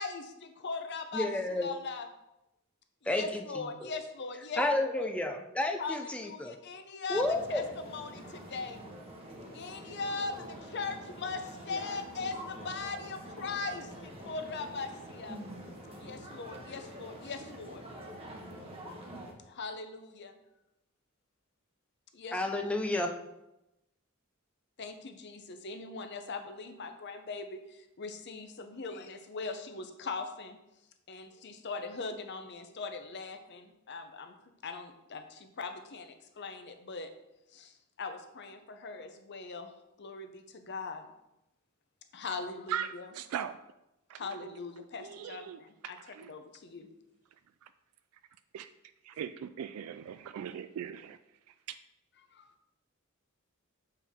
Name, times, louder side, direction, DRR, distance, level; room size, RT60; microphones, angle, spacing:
voice 1, 0.0-2.1 3.0-5.1 5.8-7.2 7.5-8.8 9.5-15.4 16.0-17.8 19.5-20.4 22.1-22.7 24.8-30.6 31.1-34.3 34.6-37.1 37.5-39.7 40.0-41.1 42.1-43.1 44.1-46.0 46.3-46.9 52.3-52.5, left 4 dB, 55° left, 7 dB, 0.7 m, -40 dB
voice 2, 1.1-1.7 3.1-3.4 3.8-3.9 4.6-6.5 7.1-7.6 22.3-23.1, left 2 dB, 5° left, 4 dB, 0.4 m, -31 dB
sound 1, 7.1-19.3, equal, 25° right, 1.0 m, -46 dB
voice 3, 42.7-43.6 44.1-44.5 45.0-46.4 47.6-47.7 48.5-48.7 49.0-51.2 51.5-51.8, right 9 dB, 90° right, 14 dB, 0.3 m, -40 dB
7.2 x 4.5 x 3.6 m, 0.90 s
head